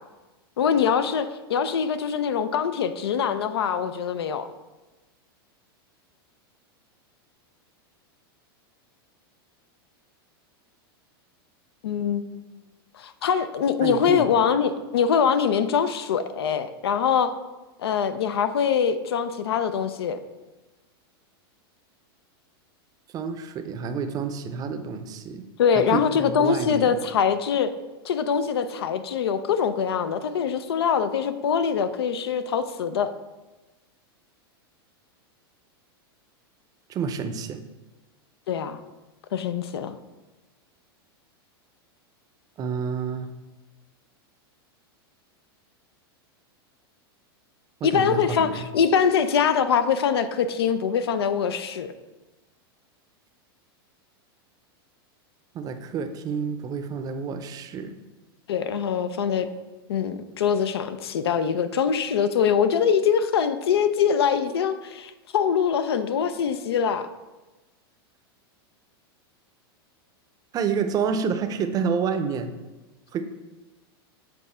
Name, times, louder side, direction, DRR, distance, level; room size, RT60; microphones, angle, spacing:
voice 1, 0.6-4.5 11.8-12.3 13.0-17.3 17.8-20.2 25.6-27.7 28.0-33.1 38.5-38.8 39.3-39.9 47.8-51.9 58.5-59.5 59.9-67.1, left 7 dB, 90° left, 11 dB, 0.5 m, -23 dB
voice 2, 13.8-14.3 23.1-25.4 25.7-27.0 36.9-37.6 42.6-43.3 47.8-48.5 55.5-58.0 70.5-72.5 73.1-73.2, right 6 dB, 30° right, 8 dB, 0.5 m, -29 dB
7.8 x 3.6 x 4.3 m, 1.1 s
hypercardioid pair, 125°, 13 cm